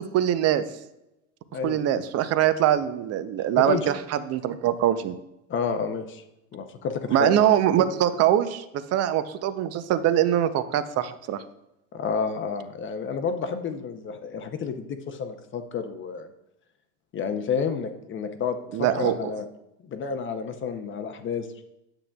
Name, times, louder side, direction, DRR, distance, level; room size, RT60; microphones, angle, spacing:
voice 1, 0.1-0.6 1.6-5.2 7.1-11.4 18.7-19.2, right 11 dB, 40° right, 13 dB, 0.5 m, -23 dB
voice 2, 3.6-3.9 5.5-6.2 6.5-7.3 11.9-16.3 17.1-19.4 19.8-21.6, left 5 dB, 30° left, 7 dB, 0.6 m, -30 dB
8.8 x 7.1 x 2.3 m, 0.90 s
supercardioid pair, 120°, 40 cm